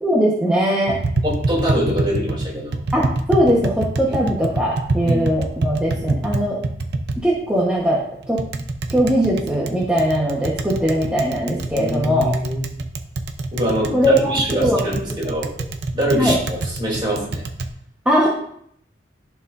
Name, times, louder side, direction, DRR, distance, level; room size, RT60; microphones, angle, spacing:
voice 1, 0.0-1.0 2.9-6.6 7.2-8.0 8.3-8.4 8.9-12.3 13.9-14.8 16.2-16.4 18.0-18.3, equal, 5° right, -6 dB, 1.2 m, -20 dB
Tap, 0.9-17.7, right 2 dB, 65° right, 0.7 m, -27 dB
voice 2, 1.2-2.8 4.1-4.2 5.0-5.2 11.7-12.6 13.5-15.5 15.9-17.4, equal, 25° right, -4 dB, 3.2 m, -24 dB
14.0 x 4.7 x 2.7 m, 0.67 s
head